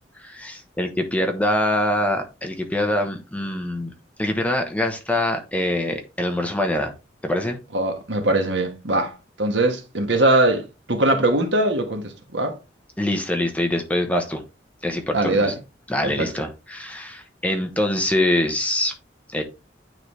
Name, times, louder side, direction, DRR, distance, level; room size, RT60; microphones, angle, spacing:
voice 1, 0.2-3.9 4.2-6.9 7.2-7.6 13.0-14.4 14.8-15.5 15.9-18.9 19.3-19.4, left 1 dB, 10° left, 0.9 m, -24 dB
voice 2, 7.7-9.1 9.4-12.6 15.1-15.5 16.0-16.3, right 2 dB, 75° right, 1.4 m, -21 dB
9.2 x 3.9 x 3.2 m
head